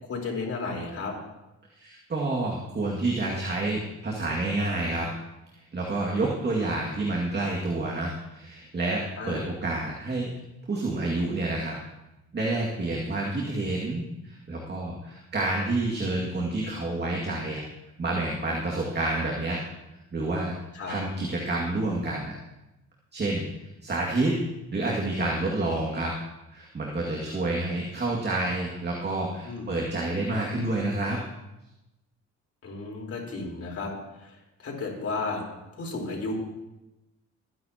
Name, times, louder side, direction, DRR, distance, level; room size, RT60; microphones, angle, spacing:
voice 1, 0.0-1.1 9.2-9.5 20.7-21.0 29.4-29.7 32.6-33.9 34.2-35.4 35.7-36.3, left 3 dB, 50° left, -1 dB, 4.3 m, -33 dB
voice 2, 1.8-5.1 5.5-10.3 10.7-11.8 12.3-17.6 18.0-19.6 20.1-20.5 20.9-22.3 23.1-23.5 23.8-24.4 24.7-26.2 26.5-31.2, right 2 dB, 35° right, -3 dB, 2.3 m, -29 dB
22.5 x 10.0 x 3.0 m, 0.96 s
cardioid pair, 90°, 30 cm